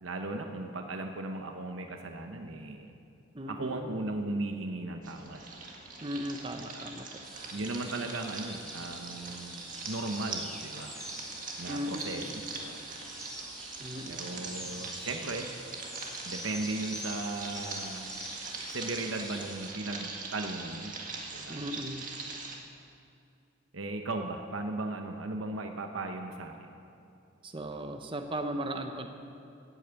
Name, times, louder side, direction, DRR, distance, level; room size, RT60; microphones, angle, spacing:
voice 1, 0.0-2.9 3.5-5.4 6.5-6.9 7.5-10.9 11.6-12.8 14.1-15.5 16.2-18.1 18.7-20.9 21.3-21.6 23.7-26.7, right 2 dB, 80° right, 4 dB, 0.9 m, -37 dB
voice 2, 3.3-3.9 6.0-7.1 11.7-12.3 13.8-14.9 21.5-22.1 27.4-29.1, right 1 dB, 25° right, 6 dB, 0.8 m, -37 dB
sound 1, 5.0-22.6, right 3 dB, 40° right, 1.8 m, -42 dB
sound 2, 7.2-19.7, equal, ahead, 1.5 m, -46 dB
16.0 x 8.8 x 8.2 m, 2.6 s
head